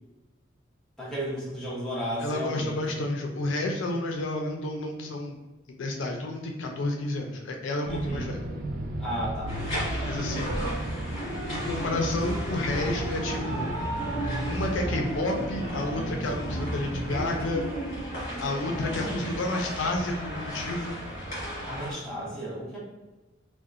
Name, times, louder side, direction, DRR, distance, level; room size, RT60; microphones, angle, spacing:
voice 1, 1.0-3.0 7.9-8.3 9.0-9.5 21.7-22.8, equal, 5° left, -8 dB, 0.7 m, -33 dB
voice 2, 2.2-5.4 5.8-8.5 10.1-10.7 11.5-13.7 14.5-17.7 18.4-21.0, left 2 dB, 75° left, 1 dB, 0.4 m, -30 dB
sound 1, 7.8-17.5, right 1 dB, 45° right, 0.3 m, -34 dB
sound 2, 9.5-21.9, equal, 40° left, 1.4 m, -34 dB
2.7 x 2.1 x 2.4 m, 1.1 s
head